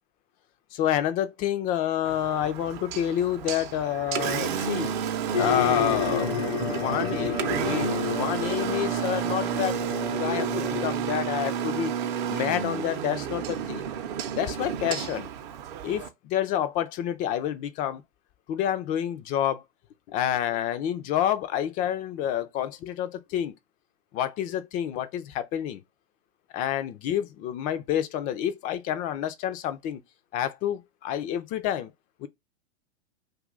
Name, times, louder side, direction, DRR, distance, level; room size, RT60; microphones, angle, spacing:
voice 1, 0.7-4.9 5.4-9.8 10.2-11.9 12.3-13.9 14.4-15.3 15.8-18.0 18.5-19.6 20.1-23.5 24.1-25.8 26.5-30.0 30.3-31.9 32.2-32.3, left 10 dB, 25° left, 0.4 m, -28 dB
Engine, 2.0-16.1, right 8 dB, 45° right, 0.7 m, -31 dB
sound 1, 5.3-10.9, left 7 dB, 85° left, 0.7 m, -30 dB
2.7 x 2.4 x 3.8 m
hypercardioid pair, 115°, 34 cm